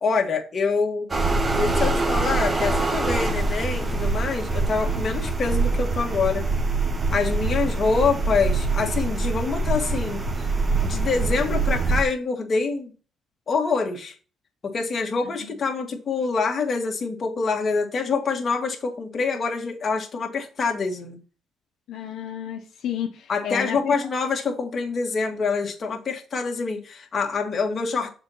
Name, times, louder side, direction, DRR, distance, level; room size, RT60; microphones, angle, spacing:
voice 1, 0.0-1.1 1.5-6.5 7.1-10.5 10.8-12.9 13.5-14.1 14.6-21.2 23.3-28.1, left 4 dB, 45° left, 2.0 m, -26 dB
sound 1, 1.1-12.0, right 3 dB, 30° right, 1.3 m, -24 dB
voice 2, 21.9-24.0, left 9 dB, 75° left, 1.0 m, -31 dB
6.8 x 4.1 x 5.7 m
cardioid pair, 90°, 0 cm